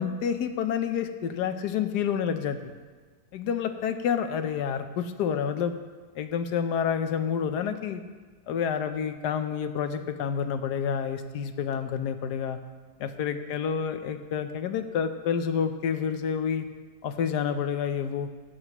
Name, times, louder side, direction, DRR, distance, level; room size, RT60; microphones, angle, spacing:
voice 1, 0.0-2.7 3.3-5.8 6.1-8.0 8.5-12.6 13.0-16.7 17.0-18.3, left 7 dB, 75° left, 9 dB, 1.3 m, -29 dB
16.0 x 10.0 x 3.0 m, 1.4 s
omnidirectional pair, 1.8 m